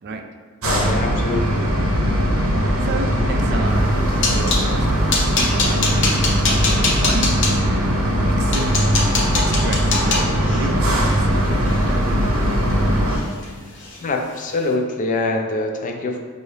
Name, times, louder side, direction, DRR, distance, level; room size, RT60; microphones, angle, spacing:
voice 1, 0.6-1.6 14.0-16.2, left 2 dB, 35° left, 3 dB, 0.4 m, -24 dB
sound 1, 0.6-13.2, equal, 70° right, 0.7 m, -19 dB
voice 2, 2.8-7.3 7.6-8.0 8.3-12.5, right 2 dB, 50° right, 4 dB, 0.4 m, -32 dB
sound 2, 3.8-4.7 5.1-7.5 8.1-8.2 8.5-12.7 13.1-13.5 13.8-14.0 14.4-14.5, left 3 dB, 60° left, 0.7 m, -24 dB
5.5 x 2.7 x 3.2 m, 1.5 s
head